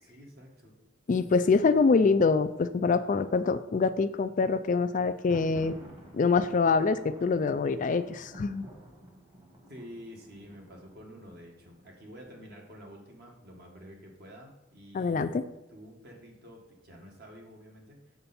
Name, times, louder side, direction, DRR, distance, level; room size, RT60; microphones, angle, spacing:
voice 1, 0.0-0.7 9.7-15.4 15.7-18.0, equal, 55° right, -1 dB, 1.8 m, -49 dB
voice 2, 1.1-5.8 6.1-8.6 14.9-15.5, left 4 dB, 40° left, 11 dB, 0.3 m, -25 dB
Thunder, 5.0-12.8, equal, 30° right, 1.7 m, -51 dB
6.9 x 6.6 x 4.2 m, 0.93 s
head